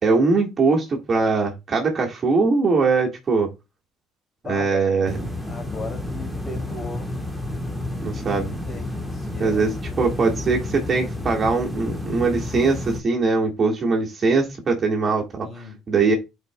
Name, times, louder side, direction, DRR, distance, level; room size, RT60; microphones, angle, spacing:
voice 1, 0.0-3.5 4.4-5.2 8.0-8.5 9.4-9.7 10.0-16.2, right 4 dB, 30° right, 1.7 m, -21 dB
voice 2, 4.4-4.8 5.5-7.1 8.0-9.7 10.3-10.5 15.4-15.8, left 3 dB, 30° left, 2.5 m, -37 dB
sound 1, 5.1-13.0, left 2 dB, ahead, 1.4 m, -31 dB
12.0 x 4.7 x 2.2 m
cardioid pair, 130°, 0 cm